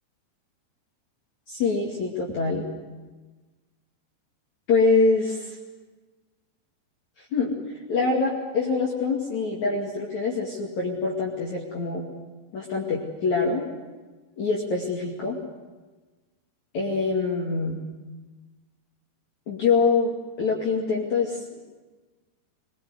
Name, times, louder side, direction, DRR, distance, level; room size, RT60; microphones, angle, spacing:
voice 1, 1.5-2.6 4.7-5.6 7.3-7.5 7.9-12.0 12.5-13.6 14.4-15.4 16.7-17.8 19.5-21.4, left 4 dB, 45° left, -3 dB, 3.3 m, -24 dB
22.5 x 22.5 x 8.0 m, 1.3 s
omnidirectional pair, 5.2 m